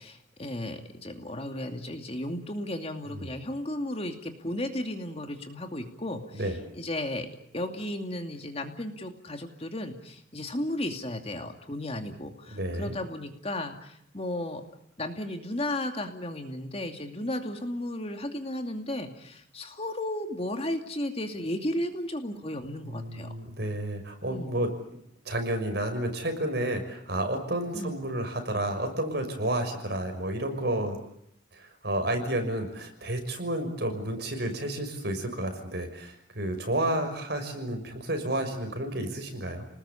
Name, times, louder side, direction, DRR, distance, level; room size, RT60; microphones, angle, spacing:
voice 1, 0.0-6.4 6.8-7.3 7.5-14.6 15.0-23.3 24.3-24.5 27.7-28.0, left 1 dB, 30° left, 6 dB, 2.5 m, -34 dB
voice 2, 12.5-13.0 22.8-25.0 25.2-31.0 31.5-39.7, right 1 dB, 55° right, 6 dB, 6.2 m, -31 dB
30.0 x 20.0 x 8.5 m, 0.72 s
head